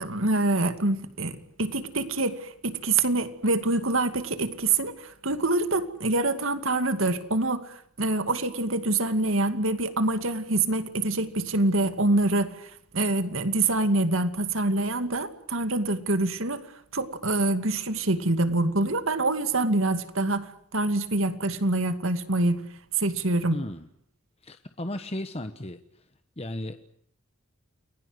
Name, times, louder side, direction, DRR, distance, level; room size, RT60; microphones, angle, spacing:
voice 1, 0.0-16.6 16.9-22.6 23.0-23.6, right 2 dB, 60° right, 10 dB, 2.4 m, -26 dB
voice 2, 23.5-23.9 24.4-26.0 26.4-27.0, left 1 dB, 25° left, 8 dB, 1.2 m, -35 dB
30.0 x 22.0 x 8.0 m, 0.67 s
head